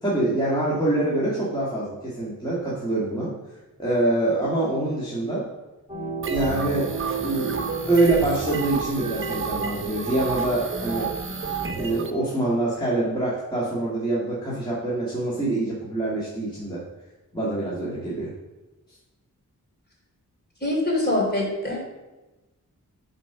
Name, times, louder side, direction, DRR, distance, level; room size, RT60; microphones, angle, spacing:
voice 1, 0.0-3.3 3.8-5.4 6.3-6.9 7.2-11.1 11.7-16.8 17.3-18.3, right 2 dB, 15° left, -8 dB, 1.9 m, -25 dB
sound 1, 5.9-11.9, right 4 dB, 20° right, 1.6 m, -34 dB
sound 2, 6.2-12.1, right 5 dB, 40° right, 0.8 m, -31 dB
voice 2, 20.6-21.8, left 1 dB, 30° left, -2 dB, 2.9 m, -24 dB
7.5 x 4.3 x 5.7 m, 1.1 s
wide cardioid pair, 80°, 34 cm